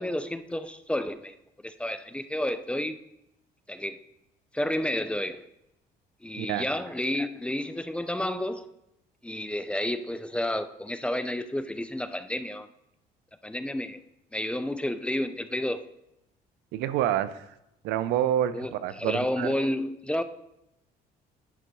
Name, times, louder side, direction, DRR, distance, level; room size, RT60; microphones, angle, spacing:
voice 1, 0.0-1.3 1.6-3.0 3.7-4.0 4.5-5.5 6.2-8.7 9.2-12.7 13.4-14.0 14.3-15.8 18.5-20.2, left 1 dB, 5° left, 0.4 m, -30 dB
voice 2, 16.7-17.5 17.8-19.5, right 11 dB, 90° right, 0.5 m, -28 dB
11.0 x 3.9 x 4.5 m
cardioid pair, 110°, 17 cm